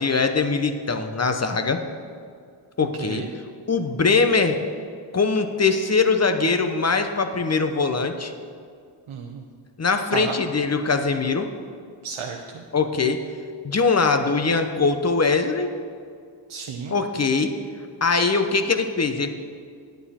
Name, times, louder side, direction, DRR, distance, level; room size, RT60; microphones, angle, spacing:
voice 1, 0.0-1.8 2.8-3.2 3.7-4.6 5.1-8.3 9.8-11.5 12.7-13.2 13.6-15.7 16.9-17.5 18.0-19.3, left 4 dB, 35° left, 7 dB, 0.8 m, -22 dB
voice 2, 9.1-9.4 10.1-10.3 12.0-12.4 16.5-16.9, right 6 dB, 90° right, 2 dB, 0.7 m, -32 dB
9.2 x 9.2 x 4.3 m, 2.2 s
wide cardioid pair, 75°, 47 cm